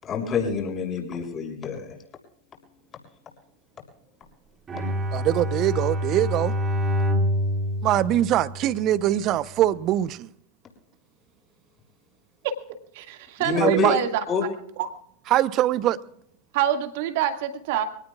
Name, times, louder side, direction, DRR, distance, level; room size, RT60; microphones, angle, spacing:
voice 1, 0.0-1.9 13.4-14.0 14.3-14.4, left 6 dB, 30° left, 6.4 m, -26 dB
Bowed string instrument, 4.7-9.1, equal, 25° right, 4.0 m, -27 dB
voice 2, 5.1-6.5 7.8-10.3 13.6-13.9 15.3-16.0, right 13 dB, 40° right, 0.8 m, -22 dB
voice 3, 12.9-14.2 14.8-14.9 16.5-17.8, right 10 dB, 60° right, 2.0 m, -26 dB
25.0 x 18.5 x 2.4 m
hypercardioid pair, 90°, 0 cm